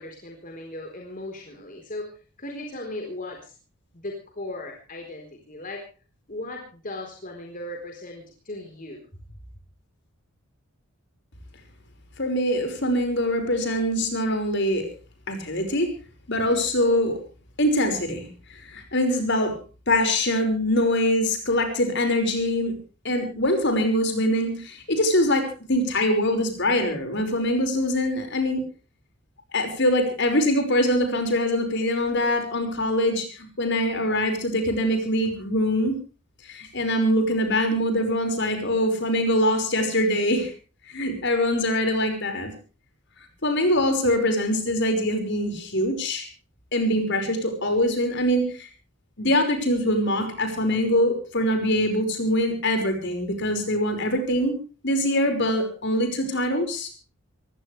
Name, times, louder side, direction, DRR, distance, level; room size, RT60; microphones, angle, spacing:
voice 1, 0.0-3.5 3.9-5.9 6.3-9.0 9.3-9.4, left 1 dB, 40° left, 1 dB, 4.1 m, -37 dB
voice 2, 12.2-14.9 15.3-15.9 16.3-17.1 17.6-18.3 18.5-19.6 19.9-22.8 23.0-28.6 29.5-36.0 36.5-40.5 40.9-42.5 43.4-46.3 46.7-48.7 49.2-54.5 54.8-56.9, left 1 dB, 55° left, 6 dB, 5.4 m, -23 dB
23.0 x 17.0 x 3.3 m, 0.36 s
head